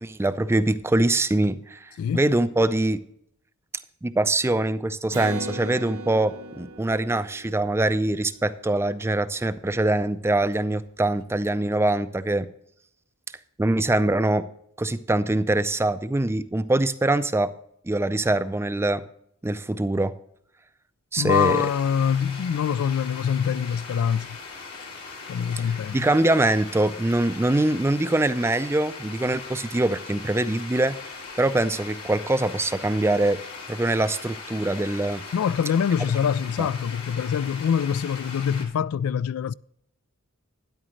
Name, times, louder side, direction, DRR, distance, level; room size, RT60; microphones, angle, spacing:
voice 1, 0.0-3.0 4.0-12.5 13.6-14.4 14.8-17.5 17.8-19.0 19.4-20.1 21.1-21.6 25.9-31.0 31.4-33.4 33.7-35.2 36.6-36.7, right 2 dB, 10° right, 0.4 m, -23 dB
Acoustic guitar, 5.1-8.8, right 2 dB, 90° right, 1.3 m, -38 dB
voice 2, 21.2-24.4 25.3-26.0 35.3-39.5, left 8 dB, 70° left, 0.3 m, -24 dB
sound 1, 21.3-38.7, left 4 dB, 90° left, 3.0 m, -40 dB
12.5 x 10.0 x 3.2 m
head